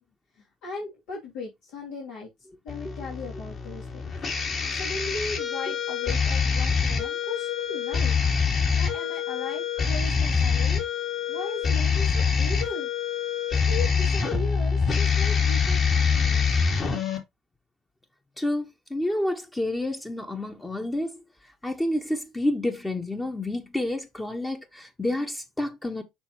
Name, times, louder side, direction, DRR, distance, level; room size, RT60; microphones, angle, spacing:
voice 1, 0.3-2.3 2.6-8.2 8.8-10.8 11.3-12.9 13.7-16.6, left 3 dB, 65° left, 2.9 m, -37 dB
sound 1, 2.7-17.2, left 6 dB, 40° left, 3.4 m, -25 dB
voice 2, 18.4-21.2 21.6-26.0, left 1 dB, 15° left, 1.3 m, -29 dB
6.9 x 6.0 x 3.1 m
hypercardioid pair, 60°, 0 cm